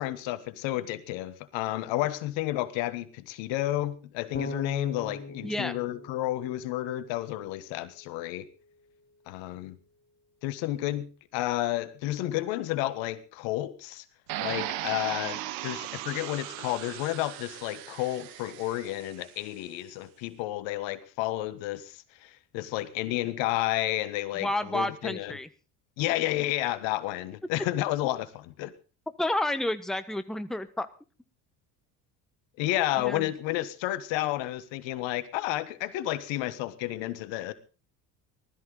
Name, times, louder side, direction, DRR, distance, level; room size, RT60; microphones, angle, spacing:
voice 1, 0.0-8.5 9.3-9.8 10.4-14.0 14.4-25.3 26.0-28.7 32.6-37.5, left 15 dB, 65° left, 15 dB, 1.5 m, -31 dB
Bass guitar, 4.3-7.4, left 4 dB, 25° left, 2.0 m, -39 dB
voice 2, 5.4-5.7 24.4-25.5 29.2-30.9 33.0-33.3, left 1 dB, ahead, 11 dB, 1.2 m, -30 dB
sound 1, 14.3-19.3, right 15 dB, 70° right, 1.3 m, -37 dB
19.5 x 13.5 x 3.9 m, 0.34 s
hypercardioid pair, 70°, 48 cm